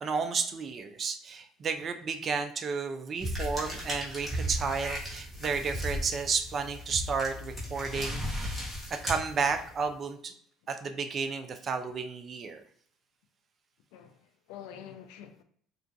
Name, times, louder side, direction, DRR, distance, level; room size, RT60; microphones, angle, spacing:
voice 1, 0.0-8.6 8.9-10.3 10.7-12.6, right 5 dB, 35° right, 7 dB, 0.3 m, -32 dB
sound 1, 3.2-9.9, equal, 10° right, 1.0 m, -36 dB
voice 2, 13.9-15.4, left 9 dB, 85° left, 8 dB, 0.3 m, -47 dB
2.4 x 2.3 x 2.5 m, 0.62 s
cardioid pair, 115°, 0 cm